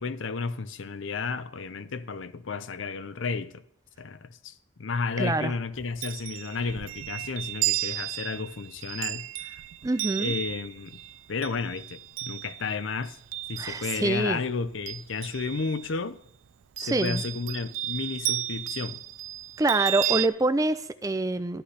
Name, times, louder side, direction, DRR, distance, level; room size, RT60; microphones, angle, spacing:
voice 1, 0.0-3.6 4.0-9.5 10.2-11.0 11.3-13.2 13.5-16.2 16.8-19.0, left 4 dB, 80° left, 0.6 m, -32 dB
voice 2, 5.2-5.5 9.8-10.3 13.6-14.4 16.8-17.2 19.6-21.6, right 2 dB, 15° right, 0.4 m, -26 dB
Chime, 5.8-14.2 14.6-16.0 16.8-20.3, right 15 dB, 85° right, 0.4 m, -33 dB
13.5 x 11.5 x 3.3 m
head